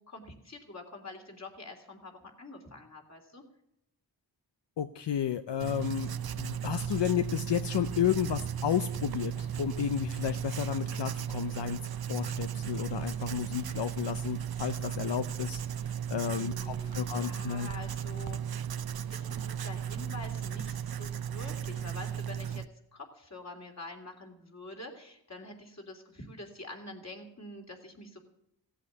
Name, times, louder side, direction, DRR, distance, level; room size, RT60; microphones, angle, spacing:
voice 1, 0.0-3.4 16.2-18.4 19.1-22.7 22.9-28.2, left 2 dB, 40° left, 2 dB, 3.3 m, -46 dB
voice 2, 4.8-11.8 12.1-17.7, left 10 dB, 80° left, 9 dB, 0.8 m, -32 dB
Writing, 5.6-22.6, right 9 dB, 60° right, 0.7 m, -35 dB
16.5 x 8.2 x 8.2 m, 0.79 s
wide cardioid pair, 90°, 42 cm